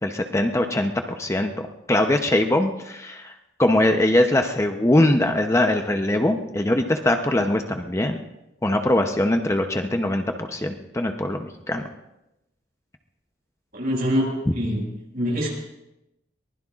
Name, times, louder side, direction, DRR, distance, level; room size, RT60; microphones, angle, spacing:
voice 1, 0.0-0.9 1.2-1.5 1.9-3.3 3.6-8.2 8.6-11.8, left 1 dB, 15° left, 5 dB, 0.7 m, -22 dB
voice 2, 13.7-14.8 15.1-15.5, equal, 55° right, -2 dB, 6.2 m, -24 dB
23.5 x 19.5 x 2.5 m, 0.90 s
head